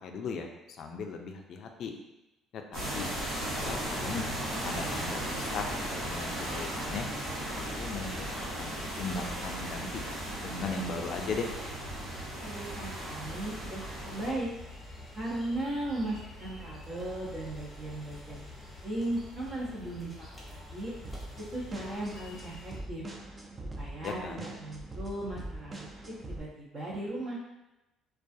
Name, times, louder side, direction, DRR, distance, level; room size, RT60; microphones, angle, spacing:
voice 1, 0.0-1.9 2.5-3.1 3.5-4.3 4.6-7.1 7.5-10.0 10.4-11.5 24.0-24.5, left 4 dB, 60° left, 4 dB, 0.3 m, -38 dB
sound 1, 2.7-14.3, right 1 dB, 80° right, 1.1 m, -36 dB
sound 2, 4.7-22.8, left 1 dB, 5° left, 0.9 m, -47 dB
voice 2, 12.4-14.5 15.1-20.9 21.4-23.0 23.8-25.9 26.3-27.4, right 1 dB, 50° right, -5 dB, 0.9 m, -37 dB
sound 3, 21.0-26.4, right 1 dB, 25° right, 0.4 m, -43 dB
2.3 x 2.3 x 2.6 m, 0.96 s
cardioid pair, 90°, 0 cm